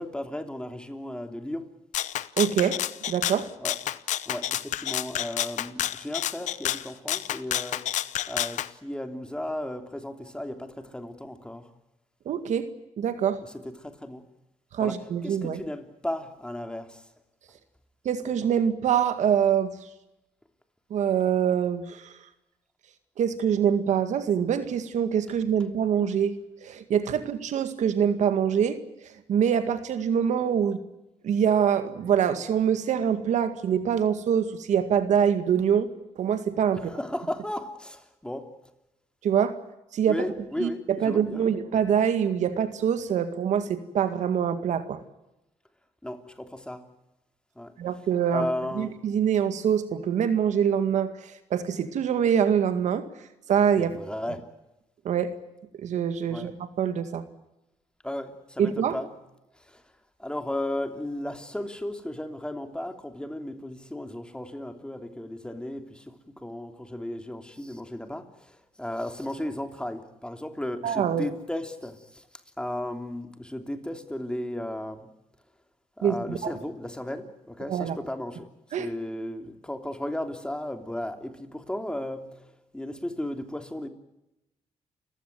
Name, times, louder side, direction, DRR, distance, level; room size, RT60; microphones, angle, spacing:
voice 1, 0.0-1.7 3.6-3.8 4.3-7.9 8.3-11.7 13.4-14.2 14.8-17.0 36.7-38.5 40.1-41.5 46.0-46.8 47.5-47.7 48.3-49.0 53.8-54.4 56.3-56.5 58.0-59.1 59.6-59.8 60.2-72.2 72.6-75.1 76.0-78.5 78.8-83.9, left 1 dB, 5° left, 6 dB, 3.1 m, -35 dB
Rattle (instrument), 1.9-8.7, left 12 dB, 85° left, 0.8 m, -30 dB
voice 2, 2.4-2.8 3.1-3.5 12.3-12.7 13.0-13.4 14.7-15.6 18.0-19.7 20.9-22.1 23.2-30.8 31.2-35.9 36.2-36.9 39.2-39.6 39.9-40.3 40.6-45.0 47.8-48.5 48.7-53.1 53.5-53.9 55.0-55.4 55.8-57.2 58.6-59.0 70.8-71.3 76.0-76.5 77.7-78.0 78.7-78.9, right 8 dB, 80° right, 10 dB, 2.0 m, -25 dB
29.0 x 16.0 x 9.4 m, 0.93 s
cardioid pair, 85°, 12 cm